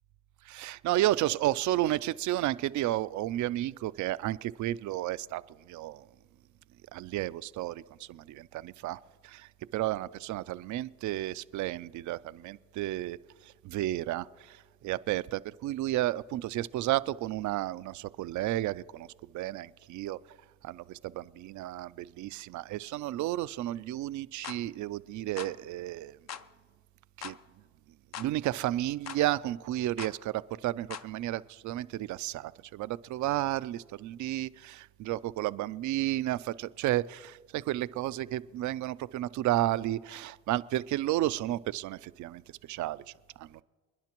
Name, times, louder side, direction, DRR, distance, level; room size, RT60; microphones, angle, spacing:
voice 1, 0.5-5.4 5.7-6.0 6.9-13.2 13.6-19.1 19.3-20.2 20.6-26.2 27.2-27.3 28.2-42.4 42.7-43.0 43.4-43.6, right 15 dB, 75° right, 0.5 m, -32 dB
sound 1, 24.4-24.6 25.4-25.6 26.3-26.5 27.2-27.4 28.1-28.3 29.1-29.2 30.0-30.2 30.9-31.1, left 8 dB, 60° left, 0.7 m, -41 dB
29.5 x 10.5 x 3.0 m
cardioid pair, 90°, 30 cm